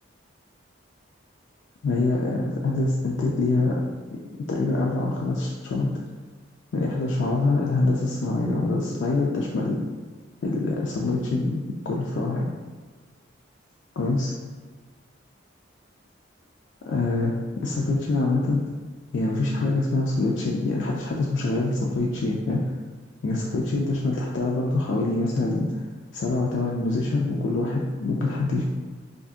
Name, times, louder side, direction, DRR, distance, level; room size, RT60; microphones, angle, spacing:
voice 1, 1.8-3.7 4.5-5.9 6.7-9.8 10.4-12.5 14.0-14.3 16.9-17.3 17.6-18.6 19.1-22.6 23.2-25.7 26.1-28.6, left 2 dB, 70° left, -3 dB, 0.3 m, -25 dB
2.6 x 2.4 x 3.5 m, 1.4 s
head